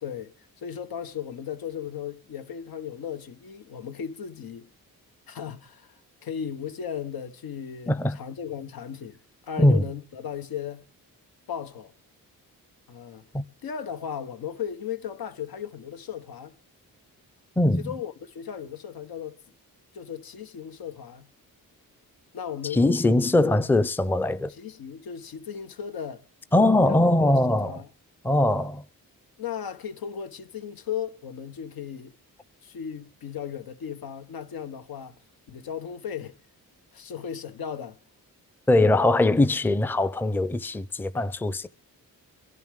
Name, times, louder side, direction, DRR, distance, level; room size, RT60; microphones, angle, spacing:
voice 1, 0.0-4.7 5.3-9.2 9.4-10.9 11.5-11.9 12.9-13.3 13.6-16.5 17.8-19.4 19.9-21.3 22.3-22.9 24.5-26.2 26.8-27.9 28.5-28.7 29.4-32.1 32.6-35.2 35.5-36.4 36.9-38.0, left 8 dB, 80° left, 1.3 m, -36 dB
voice 2, 7.9-8.2 9.6-9.8 13.3-13.4 17.6-17.9 22.7-24.5 26.5-27.8 28.2-28.8 38.7-41.7, left 1 dB, 5° left, 0.6 m, -21 dB
22.5 x 11.0 x 3.6 m
cardioid pair, 85°, 36 cm